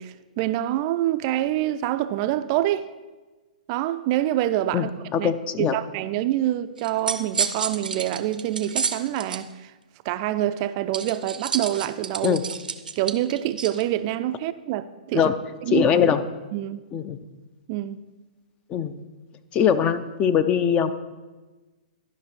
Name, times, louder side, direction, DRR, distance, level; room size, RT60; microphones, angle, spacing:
voice 1, 0.0-2.9 3.7-4.9 5.2-5.3 5.6-9.7 10.0-12.4 13.0-15.2 15.7-15.9 16.5-16.8 17.7-18.0, right 13 dB, 40° right, 0.4 m, -26 dB
voice 2, 5.1-5.8 12.2-12.4 15.1-15.3 15.7-16.2 16.9-17.2 18.7-18.9 19.5-20.9, left 8 dB, 25° left, 0.5 m, -21 dB
sound 1, 6.8-9.4 10.9-13.8, right 6 dB, 80° right, 0.6 m, -30 dB
12.0 x 5.7 x 4.4 m
hypercardioid pair, 120°, 5 cm